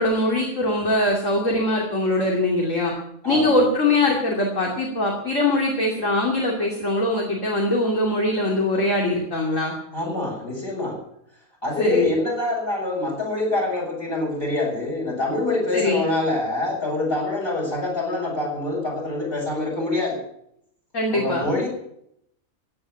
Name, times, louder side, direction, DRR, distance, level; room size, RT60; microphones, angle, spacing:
voice 1, 0.0-2.9 3.2-9.7 11.8-12.1 15.7-16.0 20.9-21.5, left 2 dB, 60° left, -1 dB, 3.1 m, -22 dB
voice 2, 3.2-3.6 9.9-11.0 11.6-20.2 21.1-21.7, left 2 dB, 40° left, 0 dB, 7.1 m, -25 dB
16.0 x 9.4 x 8.7 m, 0.73 s
omnidirectional pair, 1.5 m